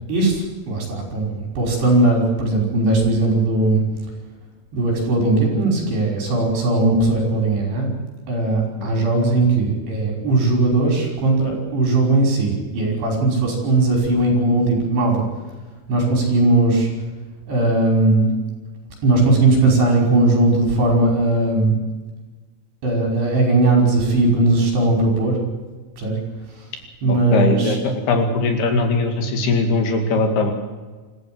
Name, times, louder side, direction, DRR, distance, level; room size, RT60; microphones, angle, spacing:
voice 1, 0.1-3.8 4.7-7.9 8.3-15.3 15.9-16.9 17.5-18.3 19.0-21.7 22.8-25.4 26.0-26.2 26.5-26.7 27.0-27.8, right 2 dB, 70° right, 1 dB, 7.5 m, -18 dB
voice 2, 27.1-30.5, left 3 dB, 65° left, 5 dB, 4.2 m, -20 dB
26.5 x 14.5 x 7.8 m, 1.3 s
omnidirectional pair, 5.0 m